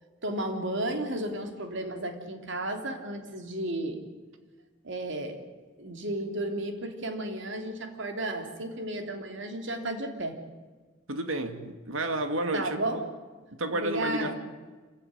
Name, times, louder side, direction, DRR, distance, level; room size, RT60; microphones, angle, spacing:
voice 1, 0.2-4.0 4.8-5.4 5.8-10.4 12.5-13.0 13.7-14.4, right 1 dB, 65° right, 5 dB, 3.3 m, -33 dB
voice 2, 11.1-12.8 13.6-14.3, right 1 dB, 80° right, 8 dB, 2.4 m, -30 dB
26.5 x 15.5 x 9.7 m, 1.4 s
head